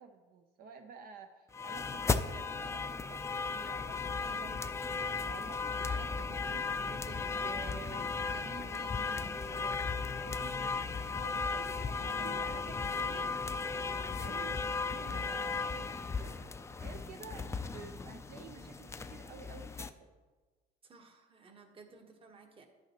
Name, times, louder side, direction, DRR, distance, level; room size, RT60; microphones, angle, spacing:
voice 1, 0.0-13.3 14.1-16.4 16.8-20.1, right 6 dB, 60° right, 6 dB, 0.6 m, -51 dB
sound 1, 1.5-19.9, left 4 dB, 15° left, 0.4 m, -36 dB
voice 2, 20.8-22.7, right 4 dB, 30° right, 4 dB, 1.2 m, -57 dB
10.5 x 8.8 x 2.9 m, 1.3 s
cardioid pair, 110°, 17 cm